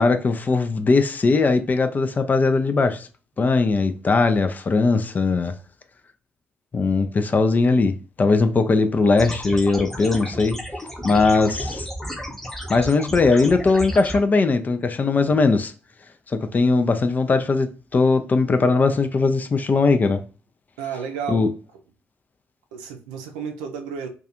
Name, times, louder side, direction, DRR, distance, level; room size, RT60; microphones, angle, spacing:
voice 1, 0.0-3.1 3.4-5.5 6.7-10.6 11.0-11.9 12.7-15.7 16.3-20.2 21.3-21.5, left 3 dB, 30° left, 0.4 m, -19 dB
sound 1, 9.2-14.2, equal, 5° left, 0.8 m, -32 dB
voice 2, 20.8-21.5 22.7-24.1, right 7 dB, 75° right, 0.5 m, -32 dB
2.3 x 2.3 x 2.8 m
figure-of-eight pair, 45°, 5 cm